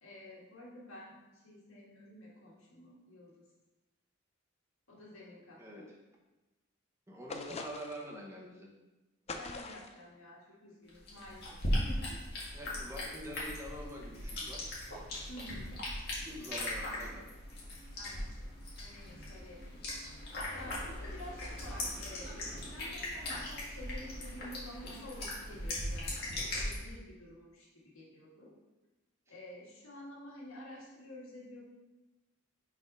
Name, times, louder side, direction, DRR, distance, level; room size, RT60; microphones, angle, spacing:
voice 1, 0.0-3.5 4.9-5.8 9.4-12.2 15.3-15.9 18.0-18.3 18.8-27.7 27.9-28.5 29.3-31.6, left 1 dB, 80° left, -4 dB, 2.0 m, -50 dB
voice 2, 5.6-6.0 7.1-8.7 10.5-10.6 12.5-14.6 16.2-17.3, equal, 15° right, -1 dB, 0.9 m, -45 dB
sound 1, 7.3-8.1 9.3-10.0, left 3 dB, 30° left, 0.5 m, -43 dB
sound 2, 10.9-26.8, left 1 dB, 50° left, 2.0 m, -39 dB
5.6 x 4.2 x 5.4 m, 1.1 s
head